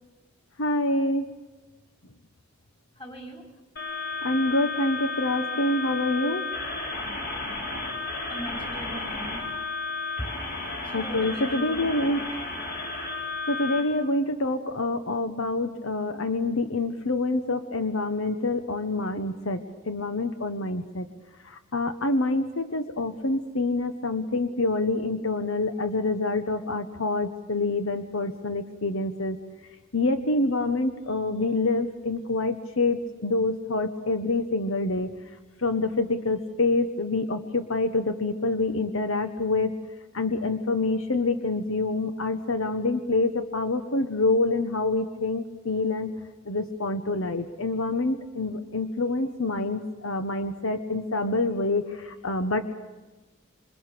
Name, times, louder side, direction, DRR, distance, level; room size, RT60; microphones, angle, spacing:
voice 1, 0.6-1.3 4.2-6.5 10.5-12.2 13.5-21.1 21.4-29.4 29.9-35.1 35.6-39.7 40.1-46.1 46.4-52.6, left 2 dB, 75° left, 9 dB, 1.3 m, -26 dB
voice 2, 3.0-3.4 8.3-9.4 10.8-12.4, equal, 25° left, 2 dB, 4.9 m, -40 dB
sound 1, 3.8-13.8, left 3 dB, 50° left, 5.2 m, -33 dB
27.5 x 26.0 x 6.9 m, 1.2 s
head